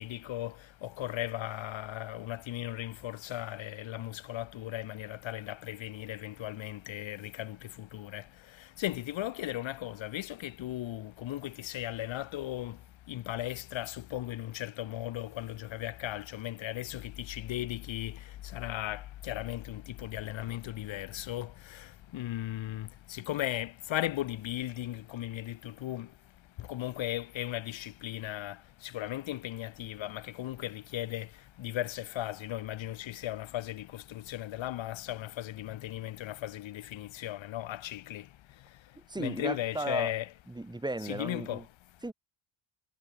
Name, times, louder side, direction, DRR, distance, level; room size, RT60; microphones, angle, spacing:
voice 1, 0.0-40.3 41.0-42.0, left 14 dB, 70° left, 4.0 m, -37 dB
voice 2, 39.1-40.1 40.5-41.6 42.0-42.1, right 2 dB, 10° right, 7.5 m, -35 dB
cardioid pair, 165°, 48 cm